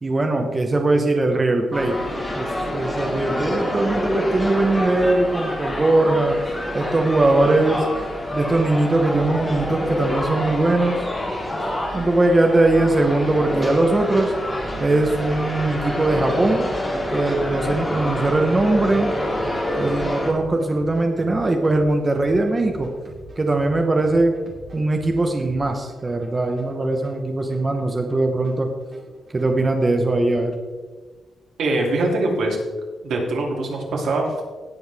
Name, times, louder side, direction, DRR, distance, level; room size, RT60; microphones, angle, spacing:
voice 1, 0.0-2.0 2.3-6.4 6.7-7.9 8.3-11.0 11.9-14.3 14.8-16.7 17.1-19.1 19.8-22.9 23.4-24.4 24.7-28.7 29.3-30.5, right 2 dB, 20° right, 3 dB, 0.8 m, -20 dB
sound 1, 1.7-20.3, left 1 dB, 10° left, 2.2 m, -27 dB
sound 2, 14.6-29.6, right 1 dB, 40° right, 2.3 m, -43 dB
voice 2, 31.6-32.6 33.0-34.4, right 2 dB, 80° right, -1 dB, 2.6 m, -23 dB
17.5 x 7.0 x 3.4 m, 1.4 s
wide cardioid pair, 165°, 0 cm